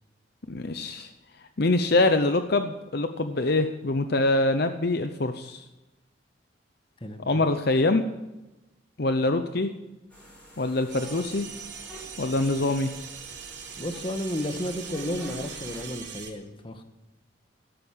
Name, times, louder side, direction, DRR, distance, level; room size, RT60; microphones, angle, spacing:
voice 1, 0.5-1.1 1.6-5.6 7.3-8.0 9.0-9.7 10.6-11.5 12.2-12.9, left 2 dB, 55° left, 8 dB, 0.8 m, -24 dB
voice 2, 7.0-7.4 13.8-16.8, left 1 dB, 25° left, 6 dB, 1.5 m, -33 dB
sound 1, 10.1-15.8, equal, 10° left, 6.1 m, -48 dB
sound 2, 10.9-16.3, right 7 dB, 70° right, 2.9 m, -41 dB
13.0 x 12.5 x 7.4 m, 1.0 s
head